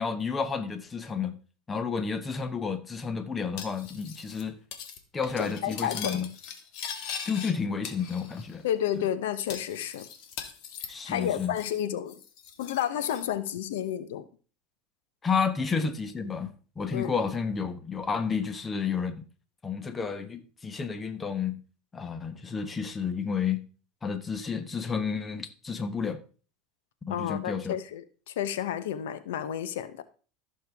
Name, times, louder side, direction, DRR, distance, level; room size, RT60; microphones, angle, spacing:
voice 1, 0.0-1.4 1.7-4.6 5.1-6.3 7.2-8.6 9.0-9.1 10.9-11.5 15.2-19.2 19.6-21.6 21.9-23.6 24.0-26.2 27.1-27.8, left 5 dB, 20° left, 1.1 m, -31 dB
Cutlery silverware, 3.6-4.4 4.7-5.0 5.2-7.5 7.8-8.6 8.8-8.9 9.5-11.8 12.1-13.3, left 7 dB, 60° left, 1.7 m, -41 dB
voice 2, 5.4-6.2 8.6-10.1 11.1-12.2 12.6-14.2 16.9-17.1 27.1-30.0, left 10 dB, 85° left, 0.9 m, -31 dB
14.5 x 6.6 x 3.5 m
supercardioid pair, 120°, 0 cm